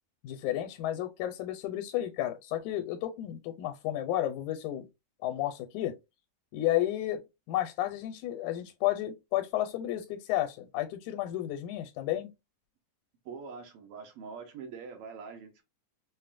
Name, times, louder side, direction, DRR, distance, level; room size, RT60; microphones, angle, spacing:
voice 1, 0.2-4.8 5.2-5.9 6.5-7.2 7.5-12.3, left 13 dB, 85° left, 2.0 m, -32 dB
voice 2, 13.2-15.6, right 5 dB, 90° right, 1.3 m, -44 dB
5.7 x 2.1 x 2.4 m
omnidirectional pair, 3.4 m